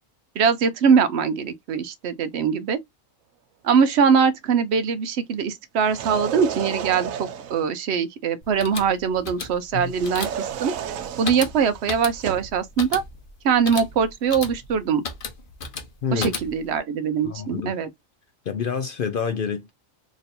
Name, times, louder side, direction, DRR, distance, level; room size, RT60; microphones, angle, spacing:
voice 1, 0.4-2.8 3.6-10.7 11.2-13.0 13.4-15.0 16.1-17.9, right 6 dB, 65° right, 0.7 m, -22 dB
sound 1, 5.8-7.7 9.9-12.6, right 8 dB, 85° right, 1.0 m, -32 dB
sound 2, 8.4-16.8, left 4 dB, 45° left, 0.9 m, -35 dB
voice 2, 16.0-16.3 17.2-17.8 18.5-19.7, left 7 dB, 65° left, 0.5 m, -27 dB
3.1 x 2.5 x 4.1 m
omnidirectional pair, 1.4 m